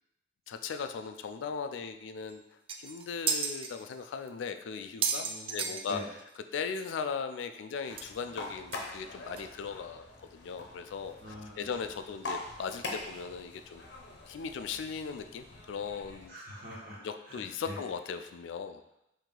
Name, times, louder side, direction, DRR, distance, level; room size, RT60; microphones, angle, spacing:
voice 1, 0.5-2.4 2.8-10.1 10.3-13.8 14.3-16.4 17.0-18.8, left 6 dB, 85° left, 8 dB, 0.3 m, -38 dB
sound 1, 2.3-2.4 2.7-3.7 4.3-4.4 4.8-6.4 6.7-6.8 7.0-7.1 8.0-8.1 8.7-8.8 9.4-9.5, right 5 dB, 30° right, 0.3 m, -33 dB
voice 2, 5.2-6.0 11.2-11.5 16.3-17.0 17.3-17.4, equal, 55° right, -6 dB, 1.5 m, -45 dB
sound 2, 7.8-16.3, left 2 dB, 65° left, 0.7 m, -44 dB
4.5 x 2.7 x 3.8 m, 0.86 s
head